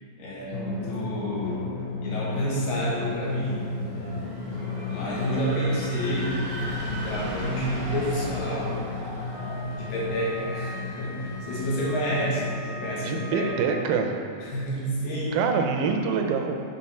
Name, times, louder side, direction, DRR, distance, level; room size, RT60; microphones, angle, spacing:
voice 1, 0.2-1.8 2.0-4.2 4.9-8.8 9.7-13.5 14.4-15.5, equal, 70° left, -5 dB, 2.8 m, -29 dB
Drum, 0.5-13.5, left 4 dB, 90° left, 1.8 m, -34 dB
sound 1, 2.7-12.6, right 1 dB, 65° right, 1.6 m, -39 dB
Wind instrument woodwind instrument, 9.2-14.1, equal, 45° left, 1.9 m, -42 dB
voice 2, 13.0-14.1 15.3-16.6, right 5 dB, 85° right, 4 dB, 2.3 m, -25 dB
7.4 x 4.2 x 4.2 m, 2.3 s
omnidirectional pair, 4.2 m